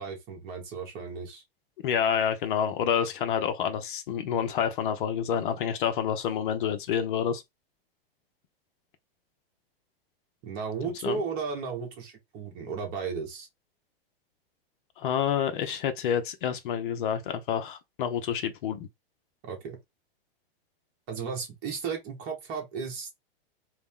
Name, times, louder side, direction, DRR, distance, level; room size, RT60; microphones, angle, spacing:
voice 1, 0.0-1.4 10.4-13.5 19.4-19.8 21.1-23.1, right 5 dB, 30° right, 1.7 m, -34 dB
voice 2, 1.8-7.4 11.0-11.2 15.0-18.9, left 8 dB, 55° left, 0.9 m, -28 dB
4.0 x 3.0 x 3.7 m
supercardioid pair, 160°, 31 cm